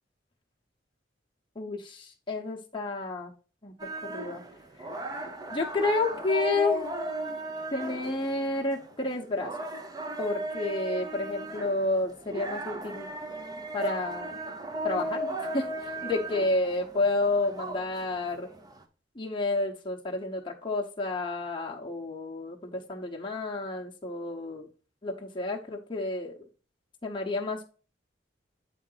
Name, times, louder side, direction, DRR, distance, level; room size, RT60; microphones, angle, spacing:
voice 1, 1.6-3.3 3.6-3.7 4.1-4.4 5.5-7.4 7.7-9.5 10.2-13.1 13.7-14.4 14.8-18.5 19.1-24.7 25.0-26.3 27.0-27.6, left 2 dB, 25° left, -2 dB, 0.9 m, -30 dB
sound 1, 3.8-18.8, right 1 dB, 20° right, 0.6 m, -36 dB
8.4 x 3.8 x 3.9 m, 0.38 s
head